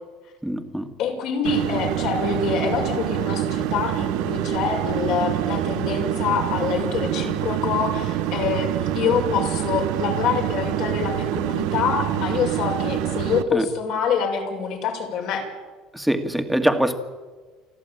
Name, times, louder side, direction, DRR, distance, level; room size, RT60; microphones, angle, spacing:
voice 1, 0.4-0.9 13.5-13.7 15.9-17.0, right 1 dB, ahead, 7 dB, 1.9 m, -23 dB
voice 2, 1.0-15.4, left 6 dB, 65° left, 1 dB, 6.3 m, -25 dB
sound 1, 1.4-13.4, right 13 dB, 75° right, 1.1 m, -26 dB
28.5 x 11.5 x 9.0 m, 1.4 s
supercardioid pair, 110°, 0 cm